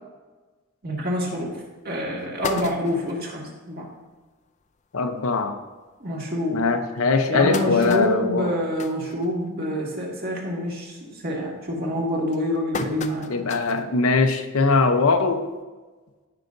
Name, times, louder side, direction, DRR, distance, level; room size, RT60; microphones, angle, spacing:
voice 1, 0.8-3.9 6.0-6.6 7.3-13.5, equal, 45° right, -3 dB, 2.0 m, -27 dB
sound 1, 1.3-1.4 1.9-2.0 2.2-3.3 3.8-3.9 4.2-4.3 4.6-4.8 5.5-5.6 6.1-6.2 7.0-9.8 10.2-10.5 10.9-11.3 11.9-13.9 14.3-14.4 15.6-15.7, left 4 dB, 35° left, 0.4 m, -35 dB
voice 2, 4.9-5.6 6.5-8.6 13.3-15.5, left 4 dB, 85° left, 7 dB, 0.8 m, -21 dB
17.0 x 5.7 x 2.6 m, 1.3 s
head